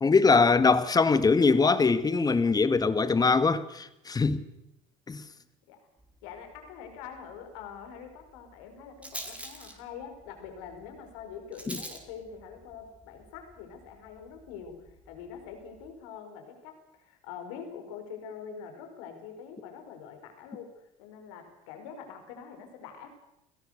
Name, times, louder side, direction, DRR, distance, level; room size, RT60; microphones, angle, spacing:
voice 1, 0.0-4.4 5.1-5.2 11.7-11.8, left 4 dB, 25° left, 2.0 m, -22 dB
Rattle, 6.0-15.9, right 1 dB, 10° right, 5.0 m, -48 dB
voice 2, 6.2-23.1, left 7 dB, 80° left, 5.3 m, -44 dB
29.5 x 17.0 x 6.8 m
supercardioid pair, 85°, 16 cm